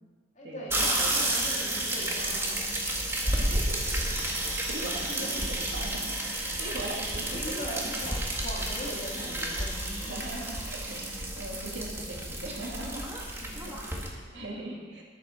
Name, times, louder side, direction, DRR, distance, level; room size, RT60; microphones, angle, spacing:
voice 1, 0.3-2.8 4.4-4.6 5.0-5.5 7.2-10.2 12.9-13.6 14.1-14.8, equal, 45° left, -5 dB, 3.4 m, -41 dB
sound 1, 0.7-14.1, right 1 dB, 15° right, 1.7 m, -31 dB
voice 2, 3.4-4.1 4.5-7.8 10.0-15.0, right 1 dB, 70° right, -2 dB, 2.4 m, -40 dB
11.0 x 9.1 x 6.5 m, 1.5 s
head